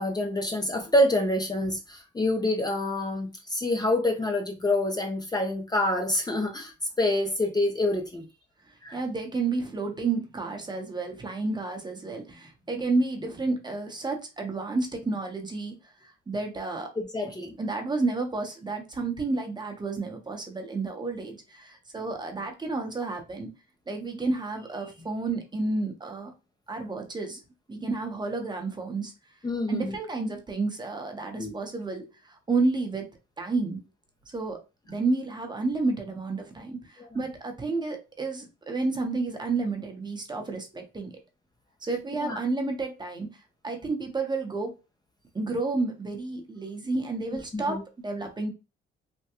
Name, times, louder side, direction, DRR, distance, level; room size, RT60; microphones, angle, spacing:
voice 1, 0.0-8.3 8.8-9.0 17.0-17.5 29.4-29.9 31.3-31.5 37.0-37.1 42.2-42.4 47.3-47.8, left 1 dB, 20° left, 0.6 m, -27 dB
voice 2, 8.7-16.9 17.6-23.5 23.9-26.3 26.7-27.4 27.7-29.1 29.7-33.1 33.4-33.8 34.3-34.6 34.9-41.2 41.8-44.7 45.3-48.5, right 3 dB, 20° right, 0.8 m, -31 dB
3.4 x 2.2 x 2.9 m
cardioid pair, 95°, 20 cm